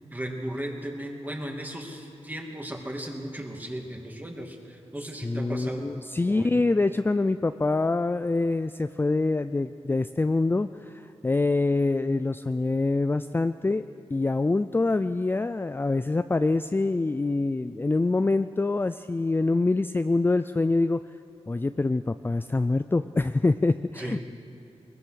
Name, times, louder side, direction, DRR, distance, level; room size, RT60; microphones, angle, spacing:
voice 1, 0.1-6.0 6.3-6.6 24.0-24.2, right 1 dB, 15° right, 1 dB, 2.6 m, -36 dB
voice 2, 5.2-13.8 14.1-21.0 21.5-24.3, left 3 dB, 20° left, 11 dB, 0.4 m, -25 dB
21.5 x 21.0 x 6.5 m, 2.8 s
wide cardioid pair, 95°, 11 cm